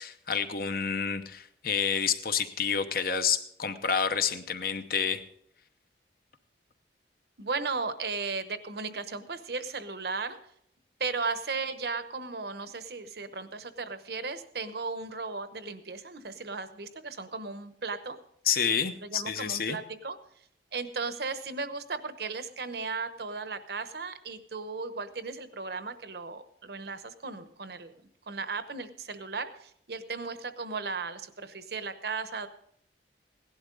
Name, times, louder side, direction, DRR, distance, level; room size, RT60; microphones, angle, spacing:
voice 1, 0.0-5.2 18.5-19.8, left 7 dB, 55° left, 10 dB, 0.9 m, -29 dB
voice 2, 7.4-10.4 11.0-18.2 19.0-20.2 20.7-27.9 28.3-32.5, right 4 dB, 60° right, 11 dB, 0.9 m, -36 dB
17.0 x 11.5 x 3.8 m, 0.69 s
head